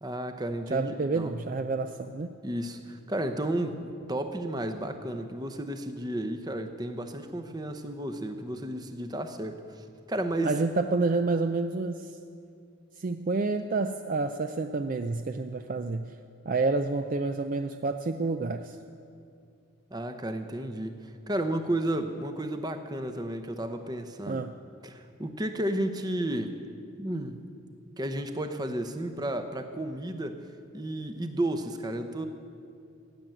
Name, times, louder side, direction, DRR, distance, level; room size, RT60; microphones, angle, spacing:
voice 1, 0.0-1.3 2.4-10.5 19.9-24.4 24.8-26.5 27.0-27.5 28.0-30.4 30.7-32.2, right 1 dB, 20° right, 7 dB, 0.8 m, -32 dB
voice 2, 0.7-2.3 10.4-12.2 13.0-16.1 16.5-18.8 24.3-24.5, right 3 dB, 40° right, 8 dB, 0.4 m, -29 dB
15.5 x 7.7 x 9.2 m, 2.5 s
head